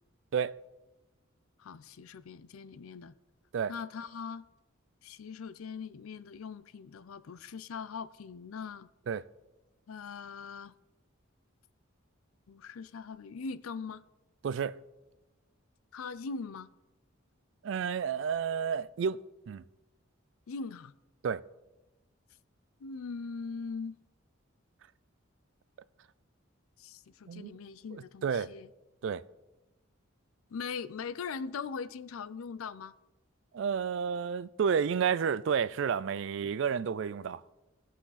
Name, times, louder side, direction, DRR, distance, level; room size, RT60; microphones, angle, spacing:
voice 1, 1.6-3.1 3.7-4.5 5.0-8.9 9.9-10.7 12.5-14.0 15.9-16.7 20.5-20.9 22.8-24.0 26.8-28.7 30.5-32.9, left 5 dB, 90° left, 0.5 m, -41 dB
voice 2, 14.4-14.8 17.6-19.2 19.5-19.6 21.2-21.4 27.3-27.5 27.9-28.5 29.0-29.2 33.5-37.6, right 7 dB, 60° right, 0.3 m, -31 dB
17.5 x 5.9 x 4.1 m
head